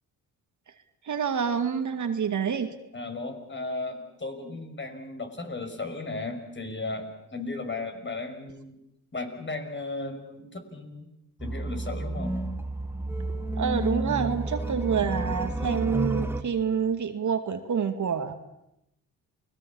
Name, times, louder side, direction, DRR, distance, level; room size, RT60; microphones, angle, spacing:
voice 1, 1.0-2.7 13.6-18.3, right 7 dB, 55° right, 7 dB, 2.4 m, -27 dB
voice 2, 2.9-8.7 9.1-11.1 11.4-12.4, left 3 dB, 30° left, 6 dB, 5.9 m, -35 dB
sound 1, 11.4-16.4, right 2 dB, 5° right, 2.5 m, -30 dB
29.0 x 20.0 x 7.3 m, 0.86 s
supercardioid pair, 65°, 36 cm